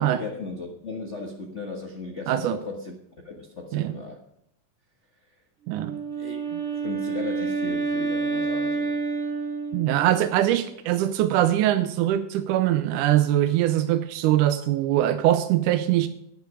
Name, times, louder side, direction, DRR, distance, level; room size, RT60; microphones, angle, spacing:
voice 1, 0.0-2.9 3.2-4.2 6.2-6.4 6.7-8.9, left 3 dB, 85° left, 0.6 m, -36 dB
voice 2, 2.3-2.6 3.7-4.0 5.7-6.0 9.7-16.1, right 13 dB, 80° right, 2.0 m, -22 dB
Wind instrument woodwind instrument, 5.7-10.2, right 4 dB, 25° right, 1.7 m, -28 dB
10.5 x 10.5 x 4.9 m
omnidirectional pair, 3.8 m